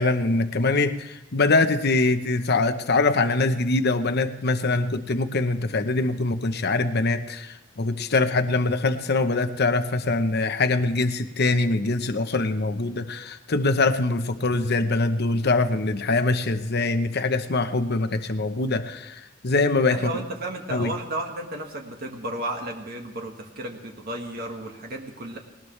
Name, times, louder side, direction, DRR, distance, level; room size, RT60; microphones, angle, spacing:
voice 1, 0.0-20.1 20.7-20.9, left 3 dB, 55° left, 9 dB, 1.0 m, -23 dB
voice 2, 19.9-25.4, right 1 dB, 50° right, 2 dB, 1.8 m, -33 dB
19.5 x 19.5 x 3.3 m, 1.0 s
head